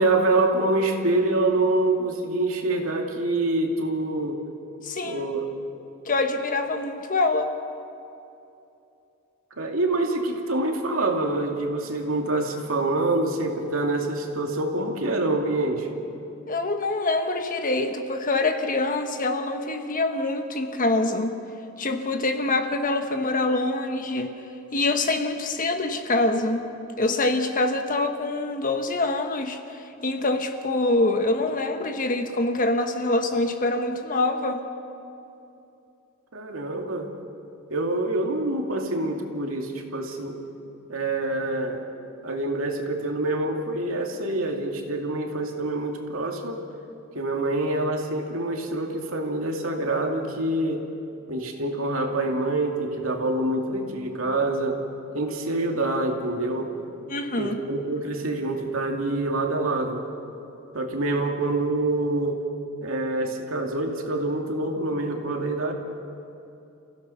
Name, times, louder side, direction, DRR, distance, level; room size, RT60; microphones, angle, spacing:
voice 1, 0.0-4.4 5.0-5.4 9.6-16.0 36.3-37.1 37.7-40.4 40.9-41.8 42.2-46.6 47.1-50.8 51.3-54.8 55.1-56.7 57.4-60.0 60.7-62.4 62.8-65.7, right 2 dB, 80° right, 2 dB, 2.5 m, -26 dB
voice 2, 4.8-5.2 6.1-7.5 16.5-21.3 21.8-24.3 24.7-26.6 27.0-29.6 30.0-34.6 57.1-57.6, left 2 dB, 40° left, 6 dB, 1.3 m, -25 dB
30.0 x 16.0 x 5.7 m, 2.7 s
head